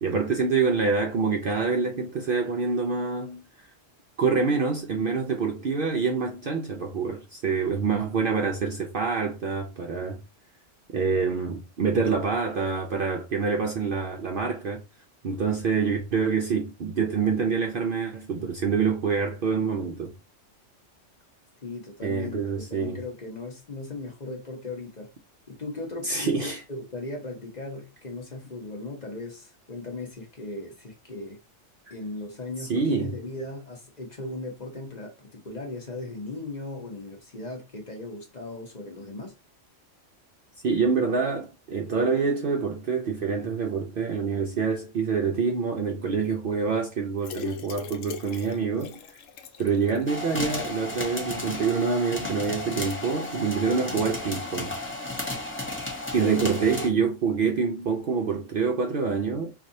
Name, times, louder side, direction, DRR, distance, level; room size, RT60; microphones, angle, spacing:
voice 1, 0.0-3.5 4.2-10.2 10.9-14.8 15.2-20.1 22.0-23.0 26.0-26.6 32.6-33.2 40.6-49.0 49.6-54.7 56.1-59.5, right 5 dB, 60° right, 0.6 m, -26 dB
voice 2, 21.6-25.1 25.5-31.4 31.9-39.3, left 2 dB, 40° left, 0.9 m, -37 dB
sound 1, 47.2-50.3 50.7-50.8 51.1-51.2, left 5 dB, 85° left, 1.0 m, -40 dB
sound 2, 50.1-56.9, left 2 dB, 10° left, 0.8 m, -33 dB
4.1 x 2.6 x 2.6 m
omnidirectional pair, 1.3 m